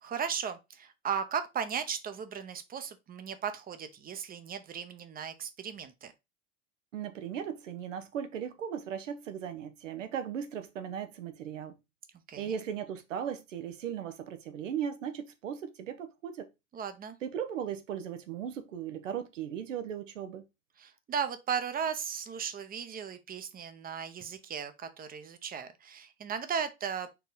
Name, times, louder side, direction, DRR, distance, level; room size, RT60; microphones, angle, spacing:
voice 1, 0.0-6.1 12.3-12.5 16.7-17.2 20.8-27.1, right 7 dB, 25° right, 0.7 m, -36 dB
voice 2, 6.9-11.8 12.4-16.5 17.2-20.5, right 8 dB, 85° right, 0.9 m, -37 dB
4.5 x 3.0 x 3.9 m
hypercardioid pair, 100°, 37 cm